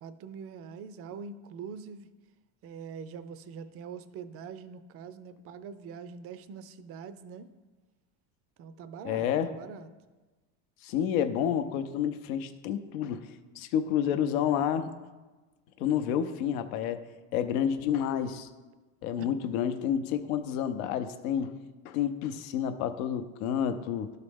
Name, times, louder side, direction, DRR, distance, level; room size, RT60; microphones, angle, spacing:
voice 1, 0.0-2.1 2.6-7.5 8.6-9.9 19.2-19.3, right 6 dB, 35° right, 13 dB, 0.4 m, -43 dB
voice 2, 9.0-9.5 10.8-13.3 13.6-14.9 15.8-18.5 19.0-21.5 21.8-24.1, left 9 dB, 85° left, 9 dB, 0.7 m, -29 dB
12.0 x 4.0 x 3.6 m, 1.2 s
supercardioid pair, 120°, 41 cm